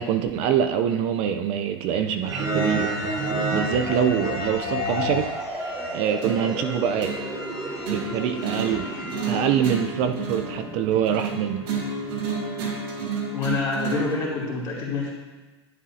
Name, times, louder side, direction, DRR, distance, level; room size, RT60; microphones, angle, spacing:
voice 1, 0.0-2.9 3.2-5.3 5.5-7.1 7.9-8.9 9.3-11.7, right 8 dB, 45° right, 7 dB, 0.5 m, -25 dB
sound 1, 2.2-9.6, right 1 dB, 25° right, 2.2 m, -30 dB
sound 2, 4.7-12.4, right 1 dB, 10° right, 1.3 m, -36 dB
sound 3, 6.2-14.2, right 4 dB, 60° right, 2.4 m, -31 dB
voice 2, 13.3-15.1, left 4 dB, 35° left, -4 dB, 2.7 m, -27 dB
11.0 x 7.7 x 2.8 m, 1.2 s
hypercardioid pair, 120°, 14 cm